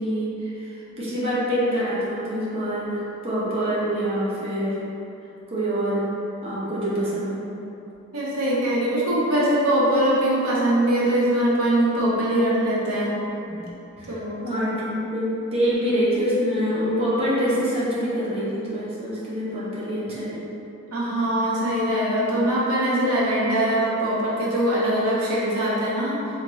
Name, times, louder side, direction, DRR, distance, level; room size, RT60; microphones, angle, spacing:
voice 1, 0.0-4.8 5.5-6.0 6.4-7.4 13.5-13.6 14.0-14.2 14.4-20.4, equal, 30° right, -9 dB, 0.8 m, -25 dB
voice 2, 8.1-13.2 14.1-14.6 20.9-26.2, right 1 dB, 85° right, -6 dB, 0.7 m, -22 dB
3.5 x 2.6 x 3.0 m, 2.9 s
head